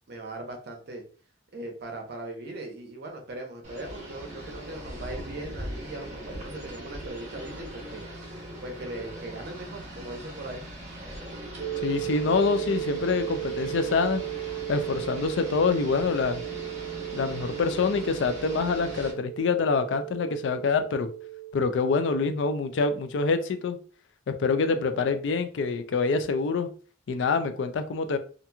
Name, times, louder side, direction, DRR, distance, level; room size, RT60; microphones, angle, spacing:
voice 1, 0.1-1.0 1.5-8.0 8.6-10.6, right 2 dB, 60° right, 3 dB, 0.7 m, -39 dB
sound 1, 3.6-19.1, right 1 dB, 40° right, 1.0 m, -40 dB
sound 2, 11.6-21.5, right 17 dB, 90° right, 0.3 m, -35 dB
voice 2, 11.8-14.2 14.7-16.4 17.1-21.1 21.5-23.8 24.3-26.7 27.1-28.2, left 4 dB, 70° left, 9 dB, 0.4 m, -26 dB
2.8 x 2.5 x 2.3 m, 0.41 s
head